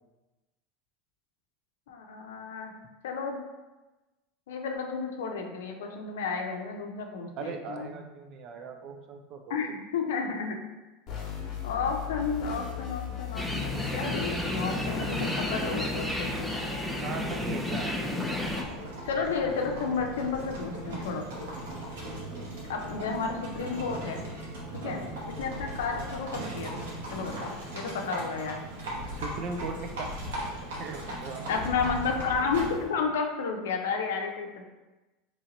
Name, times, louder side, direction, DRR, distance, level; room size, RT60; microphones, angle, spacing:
voice 1, 1.9-2.7 3.0-3.4 4.5-8.0 9.5-10.6 11.6-16.7 19.0-21.2 22.7-24.3 24.7-25.0 25.3-28.6 31.5-34.6, left 5 dB, 85° left, 3 dB, 0.5 m, -32 dB
voice 2, 7.4-9.6 17.0-18.0 24.8-25.1 29.1-30.3 30.8-31.5, right 4 dB, 50° right, 5 dB, 0.5 m, -38 dB
sound 1, 11.1-16.4, left 7 dB, 45° left, 1.1 m, -38 dB
sound 2, 13.3-18.6, left 1 dB, ahead, 0.5 m, -31 dB
Livestock farm animals working animals, 18.5-32.9, right 1 dB, 85° right, 1.2 m, -38 dB
3.0 x 2.8 x 3.9 m, 1.1 s
supercardioid pair, 115°, 0 cm